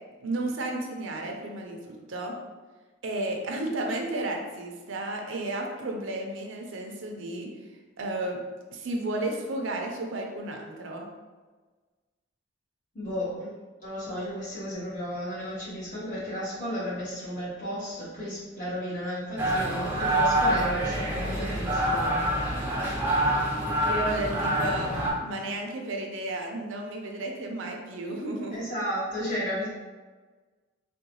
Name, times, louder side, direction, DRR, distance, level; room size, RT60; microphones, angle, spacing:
voice 1, 0.2-2.3 3.0-7.7 8.0-8.4 8.7-11.1 23.8-24.9 25.2-28.7, right 2 dB, 75° right, 1 dB, 0.5 m, -33 dB
voice 2, 12.9-13.5 13.8-22.2 22.8-22.9 28.5-29.7, equal, 45° left, -10 dB, 1.5 m, -33 dB
sound 1, 19.4-25.1, right 1 dB, 10° right, 0.5 m, -26 dB
3.6 x 2.2 x 2.8 m, 1.4 s
head